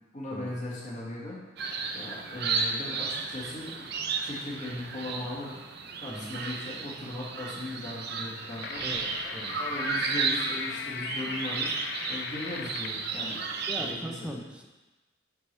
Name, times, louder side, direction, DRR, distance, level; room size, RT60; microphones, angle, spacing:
voice 1, 0.1-1.4 1.9-3.9 4.2-8.8 9.5-11.7 12.1-13.4 13.8-14.4, left 1 dB, 40° left, -5 dB, 2.0 m, -38 dB
sound 1, 1.6-13.9, right 4 dB, 55° right, 0.6 m, -33 dB
voice 2, 6.1-6.4 8.8-9.6 13.7-14.6, equal, 5° right, 2 dB, 0.7 m, -40 dB
sound 2, 8.2-13.1, left 6 dB, 60° left, 0.4 m, -38 dB
9.4 x 4.7 x 3.4 m, 1.1 s
head